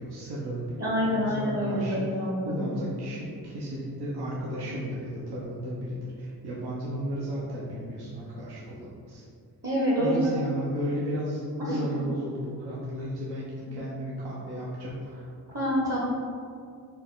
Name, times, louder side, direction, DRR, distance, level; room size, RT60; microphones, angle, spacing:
voice 1, 0.0-2.0 2.5-9.2 10.0-15.3, equal, 70° right, -6 dB, 0.8 m, -34 dB
voice 2, 0.8-2.7 9.6-10.5 11.6-11.8 15.5-16.0, equal, 35° right, -5 dB, 0.9 m, -27 dB
4.3 x 2.2 x 3.8 m, 2.3 s
cardioid pair, 50°, 41 cm